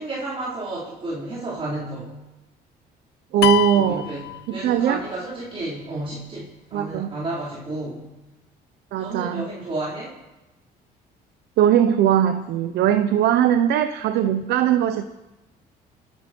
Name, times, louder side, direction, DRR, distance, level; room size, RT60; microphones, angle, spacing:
voice 1, 0.0-2.1 3.7-8.1 9.0-10.1, right 2 dB, 35° right, -6 dB, 4.3 m, -32 dB
voice 2, 3.3-4.1 4.5-5.0 6.7-7.1 8.9-9.4 11.6-15.0, right 10 dB, 75° right, 9 dB, 0.9 m, -20 dB
sound 1, 3.4-5.1, left 16 dB, 75° left, 0.8 m, -26 dB
29.0 x 10.0 x 4.6 m, 1.0 s
cardioid pair, 110°, 17 cm